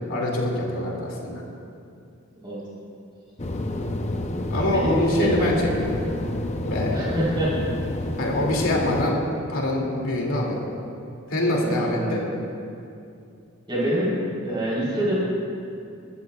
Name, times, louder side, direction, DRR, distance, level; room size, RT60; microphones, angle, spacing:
voice 1, 0.0-1.4 4.5-6.0 6.6-7.0 8.2-10.6 11.3-12.2, left 1 dB, 80° left, -2 dB, 2.5 m, -24 dB
sound 1, 3.4-9.1, left 1 dB, 30° left, 0.7 m, -29 dB
voice 2, 4.5-5.3 6.9-7.5 11.4-12.3 13.7-14.2 14.5-15.1, right 1 dB, 20° right, -7 dB, 3.8 m, -26 dB
22.5 x 14.0 x 2.4 m, 2.5 s
head